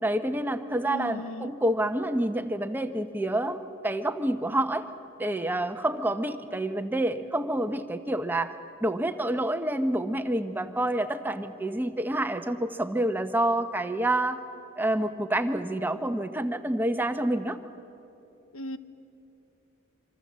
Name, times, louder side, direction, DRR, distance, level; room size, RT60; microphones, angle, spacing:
voice 1, 0.0-4.9 5.2-8.5 8.8-14.4 14.8-17.6, right 1 dB, 10° right, 8 dB, 0.8 m, -28 dB
voice 2, 0.8-1.5 18.5-18.8, left 1 dB, 90° left, 12 dB, 1.0 m, -36 dB
25.5 x 25.5 x 7.4 m, 2.9 s
head